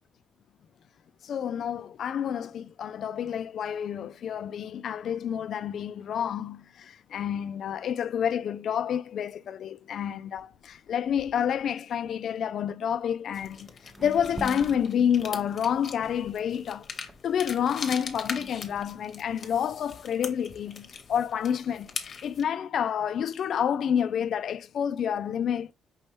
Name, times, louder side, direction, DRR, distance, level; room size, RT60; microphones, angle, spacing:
voice 1, 1.2-13.7 14.0-16.9 17.2-25.7, left 8 dB, 65° left, 0.3 m, -29 dB
sound 1, 12.9-13.0 13.4-13.6 13.9-16.6 17.1-19.6, right 2 dB, 20° right, 0.6 m, -44 dB
sound 2, 13.3-22.4, left 5 dB, 45° left, 0.8 m, -41 dB
5.3 x 2.9 x 3.1 m
cardioid pair, 90°, 0 cm